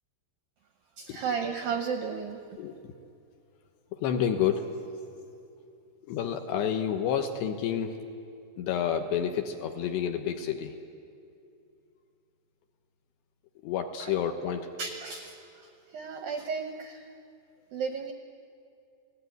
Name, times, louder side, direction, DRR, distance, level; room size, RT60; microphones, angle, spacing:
voice 1, 1.0-2.4 14.0-14.2 14.8-17.1 17.7-18.1, right 6 dB, 80° right, 5 dB, 2.1 m, -34 dB
voice 2, 2.6-2.9 3.9-4.7 6.1-8.0 8.6-10.7 13.6-14.7, left 8 dB, 70° left, 6 dB, 2.9 m, -29 dB
30.0 x 18.0 x 9.4 m, 2.6 s
omnidirectional pair, 5.7 m